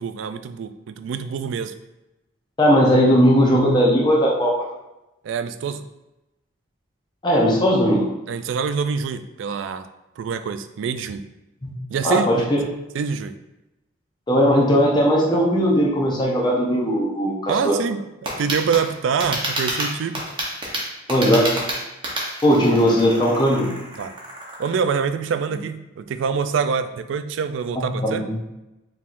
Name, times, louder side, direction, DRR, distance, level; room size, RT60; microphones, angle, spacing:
voice 1, 0.0-1.7 5.2-5.8 8.3-9.9 10.2-11.3 11.9-12.5 12.9-13.4 17.5-20.2 24.0-24.1 24.6-28.2, right 6 dB, 80° right, 11 dB, 0.3 m, -25 dB
voice 2, 2.6-4.5 7.2-8.1 11.6-11.7 12.0-12.4 14.3-17.8 21.1-21.6 22.4-23.7 27.8-28.3, equal, 25° left, -4 dB, 0.6 m, -18 dB
sound 1, 18.3-24.9, right 1 dB, 25° right, 0.8 m, -30 dB
4.6 x 3.6 x 2.5 m, 0.96 s
head